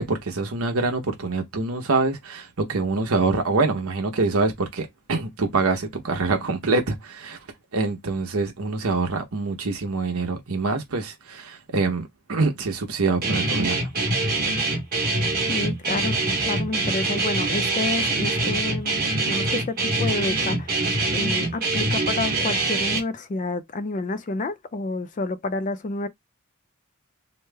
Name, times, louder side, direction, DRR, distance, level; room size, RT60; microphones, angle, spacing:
voice 1, 0.0-7.4 7.7-13.8, right 3 dB, 80° right, 1.0 m, -25 dB
Guitar, 13.2-23.0, right 2 dB, 45° right, 1.2 m, -24 dB
voice 2, 15.5-26.1, left 2 dB, 35° left, 0.4 m, -29 dB
3.1 x 2.0 x 3.4 m
head